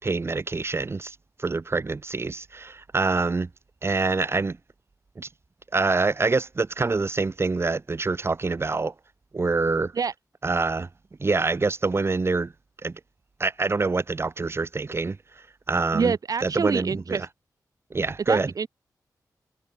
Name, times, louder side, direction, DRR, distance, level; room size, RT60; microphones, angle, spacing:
voice 1, 0.0-3.5 3.8-4.6 5.2-5.3 5.7-8.9 9.3-9.9 10.4-10.9 11.2-12.5 12.8-13.0 13.4-15.2 15.7-16.1 16.4-17.3 17.9-18.5, right 3 dB, 35° right, 3.7 m, -25 dB
voice 2, 15.9-17.3 18.3-18.7, right 5 dB, 60° right, 1.9 m, -26 dB
wide cardioid pair, 100°, 7 cm